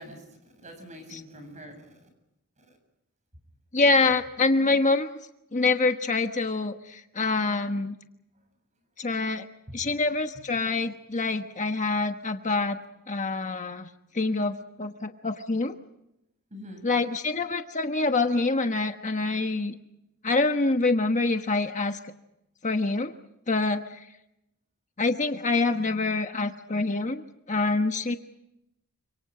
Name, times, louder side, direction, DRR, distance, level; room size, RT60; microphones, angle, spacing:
voice 1, 0.0-2.0 9.7-9.8 16.5-16.9, equal, 35° right, 7 dB, 7.3 m, -44 dB
voice 2, 3.7-5.1 5.5-8.0 9.0-9.5 9.7-12.8 13.1-13.9 14.1-15.8 16.8-19.7 20.2-22.0 22.6-23.1 23.5-24.0 25.0-27.2 27.5-28.1, left 3 dB, 35° left, 6 dB, 1.2 m, -26 dB
29.5 x 26.5 x 5.0 m, 0.86 s
head